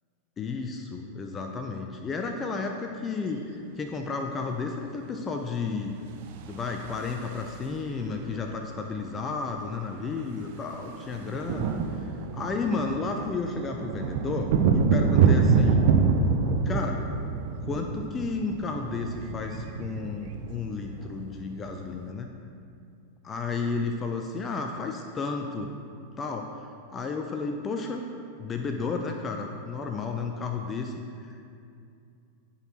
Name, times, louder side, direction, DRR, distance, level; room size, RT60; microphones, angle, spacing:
voice 1, 0.4-5.9 6.4-11.8 12.3-15.8 16.6-17.0 17.7-22.3 23.2-25.7 26.2-28.1 28.4-31.0 31.2-31.5, left 4 dB, 20° left, 3 dB, 0.4 m, -32 dB
sound 1, 6.3-7.8 9.2-9.3 9.4-9.7 10.0-22.0, right 5 dB, 50° right, 0.4 m, -26 dB
10.5 x 4.1 x 3.0 m, 2.5 s
figure-of-eight pair, 90°, 0 cm